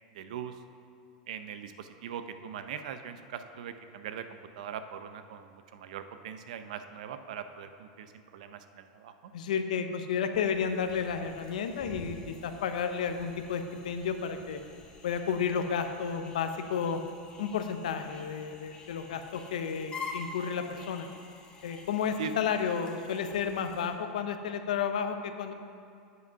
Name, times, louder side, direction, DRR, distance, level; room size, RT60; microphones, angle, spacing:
voice 1, 0.1-0.6 1.3-4.3 4.6-9.3 22.2-22.3, right 8 dB, 80° right, 9 dB, 0.5 m, -41 dB
voice 2, 9.3-14.6 15.0-17.0 17.4-21.1 21.6-25.5, left 7 dB, 90° left, 8 dB, 0.6 m, -32 dB
sound 1, 10.3-23.9, left 4 dB, 25° left, 1.1 m, -48 dB
8.0 x 5.0 x 5.7 m, 2.5 s
supercardioid pair, 125°, 4 cm